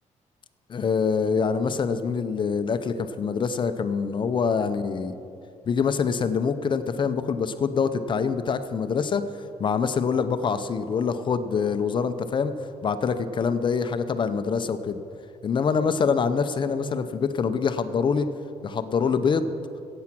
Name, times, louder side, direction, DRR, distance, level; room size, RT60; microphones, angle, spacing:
voice 1, 0.7-5.1 5.7-12.5 12.8-15.0 15.4-18.3 18.6-19.5, left 5 dB, 40° left, 10 dB, 0.6 m, -25 dB
15.5 x 8.6 x 6.0 m, 2.7 s
cardioid pair, 155°, 13 cm